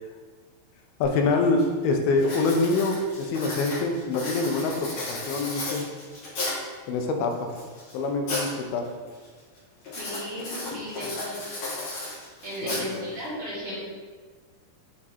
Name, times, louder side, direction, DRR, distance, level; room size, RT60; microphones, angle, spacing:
voice 1, 1.0-5.9 6.9-7.5 7.9-8.9 10.7-10.8 12.6-13.1, left 3 dB, 85° left, 3 dB, 2.5 m, -25 dB
Writing, 1.6-1.8 2.2-6.7 7.3-8.5 8.8-9.3 9.8-13.3, left 2 dB, 55° left, 2.8 m, -34 dB
voice 2, 10.0-11.4 12.4-13.9, equal, 45° right, -9 dB, 2.4 m, -35 dB
7.2 x 3.6 x 4.2 m, 1.5 s
omnidirectional pair, 4.2 m